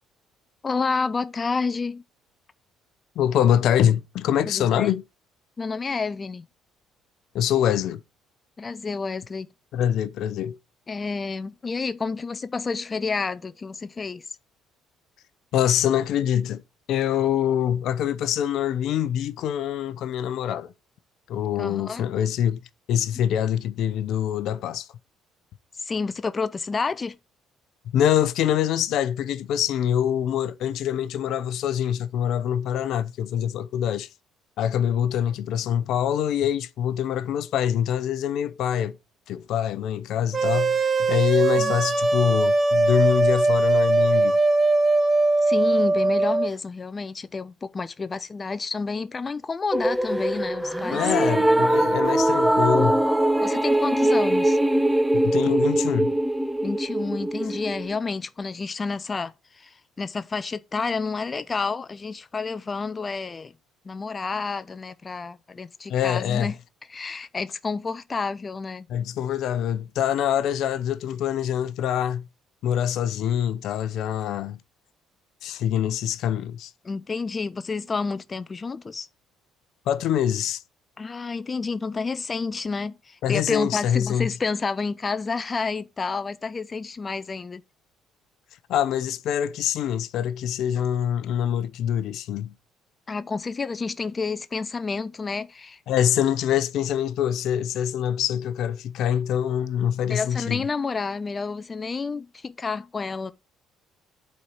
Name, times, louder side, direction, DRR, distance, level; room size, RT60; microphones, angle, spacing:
voice 1, 0.6-2.0 4.5-4.9 5.6-6.4 8.6-9.5 10.9-14.3 21.6-22.1 25.7-27.2 41.6-41.8 45.4-51.1 53.4-54.6 56.6-63.5 63.9-66.6 66.9-68.9 76.8-79.1 81.0-87.6 93.1-95.8 100.1-103.3, left 4 dB, 30° left, 0.5 m, -30 dB
voice 2, 3.2-5.0 7.3-8.0 9.7-10.6 15.5-16.6 16.9-20.7 21.3-22.6 22.9-24.9 27.9-34.1 34.6-39.0 39.3-44.4 50.9-53.0 55.1-56.1 65.9-66.5 68.9-72.2 72.6-74.6 75.4-76.7 79.9-80.6 83.2-84.3 88.7-92.5 95.9-100.6, left 10 dB, 70° left, 0.7 m, -24 dB
sound 1, 40.3-46.5, right 2 dB, 35° right, 1.1 m, -20 dB
sound 2, 49.7-58.0, right 1 dB, 5° right, 0.7 m, -22 dB
8.3 x 4.4 x 6.4 m
supercardioid pair, 75°, 0 cm